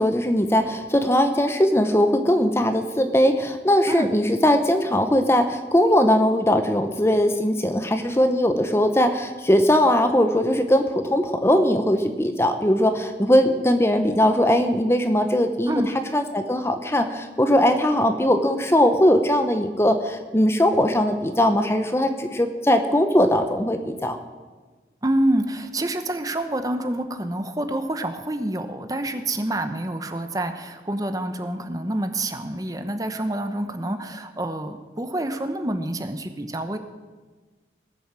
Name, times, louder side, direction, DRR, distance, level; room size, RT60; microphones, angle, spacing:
voice 1, 0.0-15.8 16.1-24.2, equal, 15° left, 7 dB, 0.8 m, -20 dB
voice 2, 25.0-36.8, right 1 dB, 20° right, 8 dB, 0.9 m, -27 dB
19.0 x 7.1 x 7.5 m, 1.3 s
head